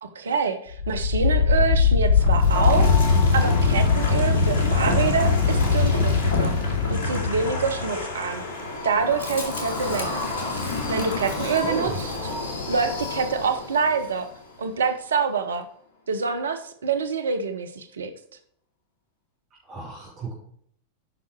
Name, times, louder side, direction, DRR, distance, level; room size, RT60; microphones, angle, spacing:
voice 1, 0.0-2.9 3.3-6.6 6.9-8.4 8.8-10.3 10.9-12.3 12.7-14.3 14.6-15.7 16.1-18.1, right 5 dB, 65° right, 9 dB, 0.8 m, -26 dB
Wind, 0.7-13.7, left 4 dB, 55° left, 2.4 m, -23 dB
voice 2, 11.2-11.9 19.6-20.3, right 4 dB, 35° right, -7 dB, 3.7 m, -35 dB
9.1 x 5.8 x 4.6 m, 0.64 s
figure-of-eight pair, 90°, 0 cm